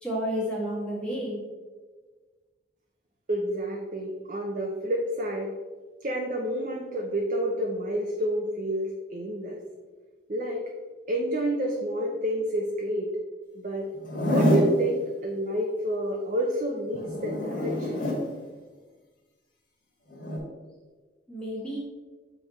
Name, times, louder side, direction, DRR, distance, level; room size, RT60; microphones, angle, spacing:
voice 1, 0.0-1.4 21.3-21.8, equal, 5° left, -6 dB, 1.7 m, -31 dB
voice 2, 3.3-5.5 6.0-9.6 10.3-10.7 11.1-13.1 13.6-13.9 14.3-18.1, right 1 dB, 45° right, 0 dB, 0.6 m, -29 dB
Zipper (clothing), 14.0-14.7 16.9-18.2 20.1-20.4, left 1 dB, 50° left, 1.8 m, -26 dB
7.8 x 3.4 x 4.2 m, 1.4 s
head